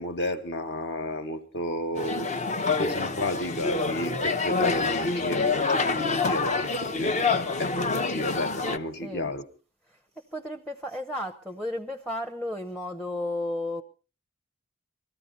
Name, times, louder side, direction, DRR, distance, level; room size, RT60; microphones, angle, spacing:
voice 1, 0.0-2.3 2.8-7.3 7.6-9.4, left 1 dB, 55° left, 1.4 m, -32 dB
sound 1, 1.9-8.8, left 3 dB, 35° left, 0.7 m, -27 dB
voice 2, 9.0-9.3 9.9-13.8, left 1 dB, 5° left, 0.7 m, -33 dB
21.5 x 14.0 x 4.0 m
head